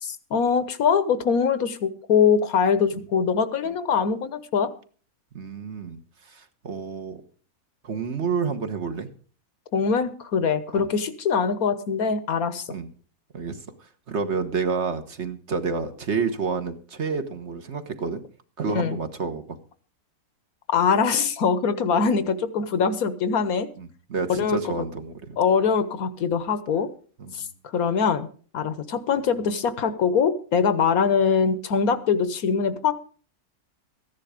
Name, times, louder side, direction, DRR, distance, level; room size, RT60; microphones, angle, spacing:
voice 1, 0.0-4.7 9.7-12.8 18.7-19.0 20.7-23.7 24.3-24.6 25.4-26.9 27.3-27.4 27.7-28.3 28.5-32.9, left 6 dB, 75° left, 13 dB, 1.5 m, -23 dB
voice 2, 5.3-7.2 7.8-9.1 10.7-10.8 12.7-12.9 13.3-13.6 14.1-18.2 18.6-19.6 23.8-25.4 27.2-27.5, right 5 dB, 50° right, 7 dB, 1.5 m, -29 dB
15.0 x 10.5 x 5.0 m, 0.42 s
omnidirectional pair, 1.5 m